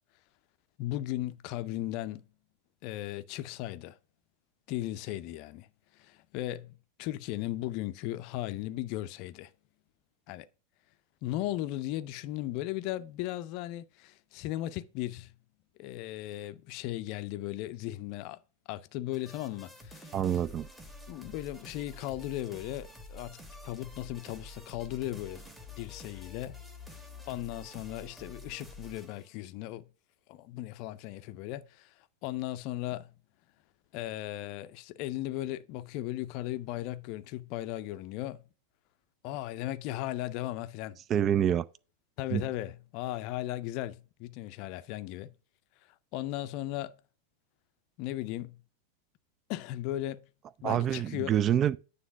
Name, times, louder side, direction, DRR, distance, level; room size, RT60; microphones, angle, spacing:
voice 1, 0.8-2.3 2.8-4.0 4.7-5.7 5.9-9.5 10.3-10.5 11.2-15.3 15.8-18.4 18.7-20.4 21.1-25.4 25.8-26.6 27.3-29.9 30.3-31.9 32.2-33.1 33.9-38.4 39.2-41.0 42.2-45.3 46.1-47.0 48.0-48.6 49.5-50.3 50.6-51.3, left 15 dB, 45° left, 0.5 m, -37 dB
Busybody Loop, 19.1-29.3, left 2 dB, 5° right, 1.3 m, -48 dB
voice 2, 20.1-20.7 41.1-41.7 42.3-42.4 50.6-51.8, right 10 dB, 30° right, 0.3 m, -26 dB
9.1 x 3.3 x 5.8 m
figure-of-eight pair, 90°, 0 cm